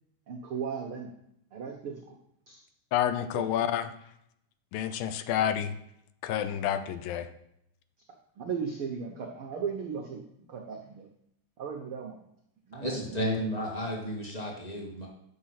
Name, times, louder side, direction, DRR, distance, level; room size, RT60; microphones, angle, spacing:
voice 1, 0.3-1.1 1.5-2.2 2.5-2.6 3.3-3.5 8.4-10.2 10.5-11.1 11.6-12.3 12.7-13.4, right 6 dB, 85° right, 2 dB, 1.2 m, -37 dB
voice 2, 2.9-3.9 4.7-5.7 6.2-7.3, left 10 dB, 85° left, 11 dB, 2.6 m, -29 dB
voice 3, 12.7-15.1, equal, 15° left, -2 dB, 1.9 m, -32 dB
10.0 x 7.2 x 5.8 m, 0.76 s
omnidirectional pair, 4.0 m